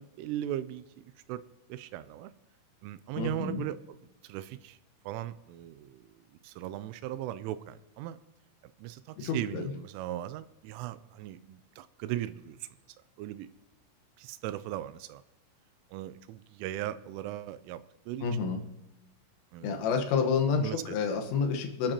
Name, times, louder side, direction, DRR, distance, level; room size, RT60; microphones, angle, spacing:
voice 1, 0.0-1.4 1.7-2.3 2.8-4.0 4.2-4.8 5.1-8.2 8.8-12.7 13.2-13.5 14.2-15.2 15.9-18.3 19.5-19.9 20.6-21.1, right 13 dB, 85° right, 14 dB, 3.1 m, -38 dB
voice 2, 3.2-3.6 9.2-9.7 18.2-18.6 19.6-21.9, left 5 dB, 85° left, 4 dB, 3.9 m, -29 dB
26.0 x 8.9 x 2.9 m, 0.96 s
omnidirectional pair, 5.6 m